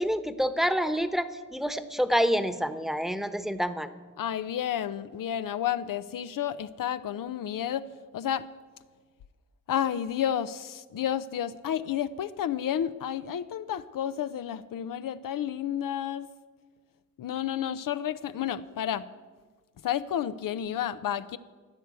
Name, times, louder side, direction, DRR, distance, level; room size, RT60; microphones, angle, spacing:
voice 1, 0.0-3.9, equal, ahead, 11 dB, 1.0 m, -27 dB
voice 2, 4.2-7.9 8.1-8.5 9.7-16.3 17.2-19.1 19.8-21.4, left 10 dB, 85° left, 12 dB, 0.6 m, -31 dB
15.0 x 9.4 x 8.2 m, 1.4 s
cardioid pair, 80°, 32 cm